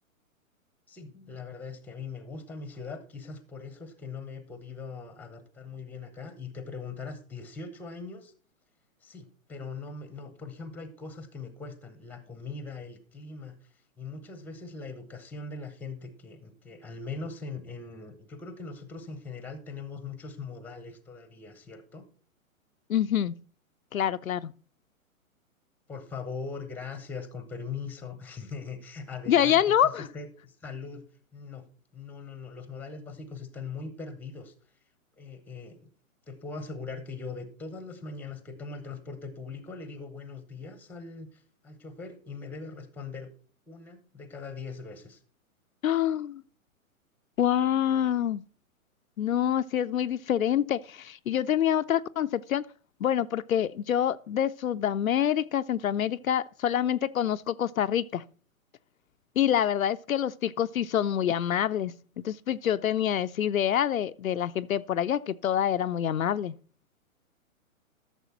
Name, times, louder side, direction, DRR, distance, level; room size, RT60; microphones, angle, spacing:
voice 1, 0.9-8.3 9.0-13.5 14.0-22.0 25.9-31.0 31.3-31.6 31.9-34.5 35.2-35.8 36.3-43.3 43.7-45.2, left 4 dB, 5° left, 0.8 m, -41 dB
voice 2, 22.9-23.3 23.9-24.5 29.3-30.1 45.8-46.4 47.4-48.4 49.2-52.7 53.0-58.2 59.4-61.9 62.2-66.5, left 10 dB, 75° left, 0.5 m, -26 dB
12.5 x 6.8 x 4.4 m
figure-of-eight pair, 120°, 42 cm